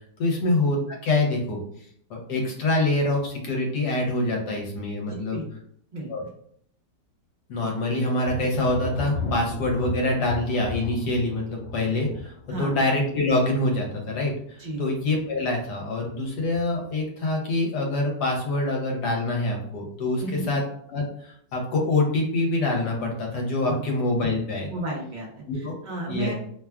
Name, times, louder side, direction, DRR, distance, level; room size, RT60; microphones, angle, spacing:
voice 1, 0.2-1.6 2.1-5.4 6.1-6.3 7.5-12.3 12.6-20.6 20.9-21.0 21.5-24.7 25.5-25.8 26.1-26.3, left 2 dB, 75° left, 0 dB, 1.3 m, -25 dB
voice 2, 5.1-5.4 5.9-6.1 12.5-12.8 14.6-14.9 20.2-20.5 23.7-23.8 24.7-25.3 25.5-26.3, right 1 dB, 60° right, -3 dB, 0.4 m, -33 dB
Thunder, 8.2-14.7 15.0-15.6 16.0-16.9, left 2 dB, 45° left, 1.3 m, -36 dB
3.0 x 2.3 x 2.2 m, 0.63 s
omnidirectional pair, 1.8 m